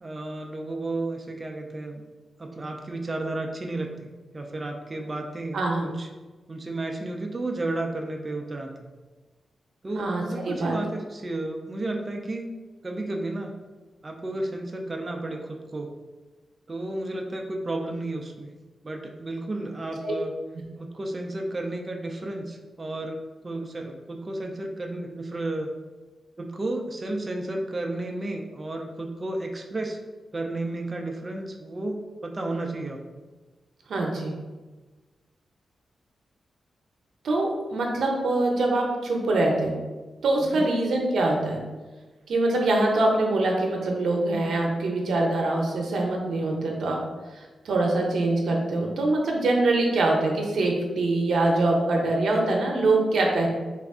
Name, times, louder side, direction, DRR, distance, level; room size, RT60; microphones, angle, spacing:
voice 1, 0.0-2.0 2.4-6.1 6.5-8.7 9.8-12.5 12.8-13.6 14.0-15.9 16.7-18.5 18.8-20.3 20.8-23.2 23.4-25.7 26.4-30.0 30.3-33.0 40.4-40.7, right 2 dB, 25° right, 2 dB, 0.3 m, -32 dB
voice 2, 5.5-5.9 9.9-10.8 20.0-20.1 33.9-34.3 37.2-39.8 40.2-41.6 42.3-47.0 47.3-53.5, right 2 dB, 75° right, 0 dB, 0.7 m, -24 dB
3.4 x 2.4 x 3.5 m, 1.3 s
wide cardioid pair, 130°, 0 cm